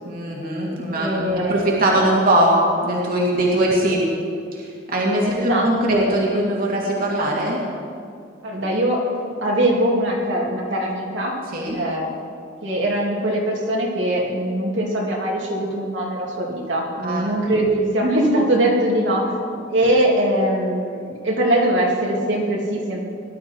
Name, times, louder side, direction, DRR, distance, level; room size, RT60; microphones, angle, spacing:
voice 1, 0.1-4.1 4.5-7.6 11.5-11.8 17.0-17.3, right 1 dB, 50° right, -3 dB, 2.3 m, -21 dB
voice 2, 0.9-1.8 3.6-3.8 5.3-6.1 8.4-9.0 9.4-11.3 11.7-12.1 12.6-19.3 19.7-23.0, right 1 dB, 70° right, -3 dB, 2.6 m, -22 dB
18.5 x 11.5 x 4.5 m, 2.3 s
head